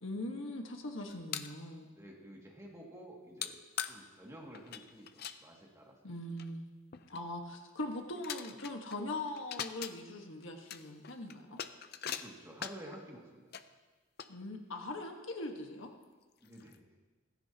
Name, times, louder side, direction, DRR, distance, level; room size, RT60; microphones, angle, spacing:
voice 1, 0.0-1.9 6.0-6.7 7.1-11.6 14.3-15.9, left 1 dB, 75° left, 3 dB, 1.5 m, -41 dB
sound 1, 1.1-1.6 3.4-3.5 3.8-3.9 4.5-5.4 6.1-6.2 6.4-6.5 6.9-7.2 7.8-7.9 8.2-9.0 9.3-9.9 10.4-13.0 13.5-13.6 14.2-14.8 15.3-15.4 16.0-16.1 16.4-16.8, left 9 dB, 50° left, 0.6 m, -42 dB
voice 2, 1.9-3.6 3.9-6.0 12.0-13.5 16.4-16.8, right 1 dB, 15° right, -2 dB, 2.3 m, -51 dB
17.5 x 16.0 x 2.9 m, 1.3 s
head